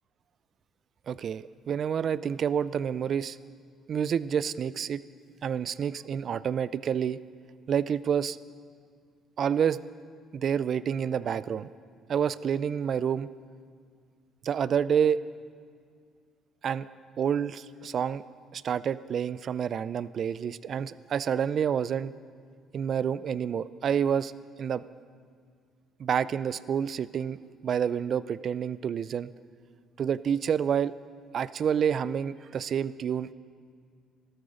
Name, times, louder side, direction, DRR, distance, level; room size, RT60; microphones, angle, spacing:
voice 1, 1.1-3.4 3.9-5.0 5.4-7.2 7.7-8.4 9.4-9.8 10.3-11.7 12.1-13.3 14.4-15.2 16.6-16.9 17.2-18.2 18.5-22.1 22.7-24.3 24.6-24.8 26.0-27.4 27.6-29.3 30.0-30.9 31.3-33.3, right 8 dB, 55° right, 17 dB, 0.4 m, -28 dB
13.5 x 12.5 x 5.0 m, 2.1 s
supercardioid pair, 75°, 0 cm